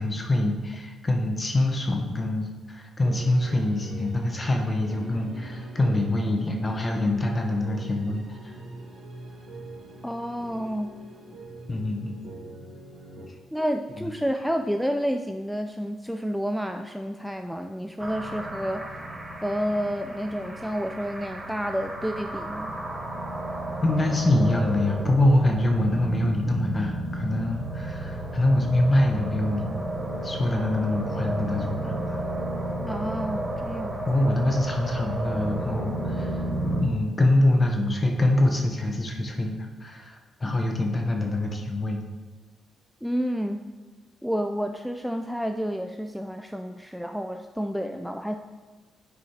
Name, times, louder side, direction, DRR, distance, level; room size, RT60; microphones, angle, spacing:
voice 1, 0.0-8.5 11.7-12.1 13.3-13.4 14.0-14.1 23.8-29.7 30.2-32.2 34.1-36.4 36.8-42.0, left 1 dB, 25° left, 2 dB, 0.9 m, -25 dB
sound 1, 3.0-13.2, right 1 dB, 55° right, 1.4 m, -42 dB
voice 2, 10.0-10.9 13.5-18.8 19.4-22.7 32.8-34.1 43.0-43.6 44.2-48.4, equal, ahead, 6 dB, 0.3 m, -30 dB
sound 2, 18.0-36.8, right 1 dB, 20° right, 1.1 m, -32 dB
9.6 x 6.3 x 2.9 m, 1.3 s
cardioid pair, 90°, 0 cm